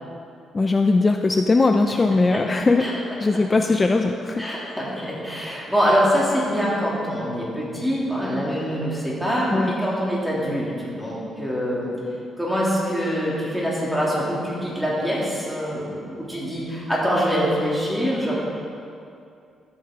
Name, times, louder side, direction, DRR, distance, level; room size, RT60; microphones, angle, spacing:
voice 1, 0.5-2.8 3.2-4.4 9.5-9.7, left 3 dB, 25° left, 5 dB, 0.4 m, -19 dB
voice 2, 4.4-11.9 12.4-18.4, equal, ahead, -7 dB, 2.7 m, -24 dB
13.5 x 8.0 x 3.7 m, 2.5 s
cardioid pair, 125°, 0 cm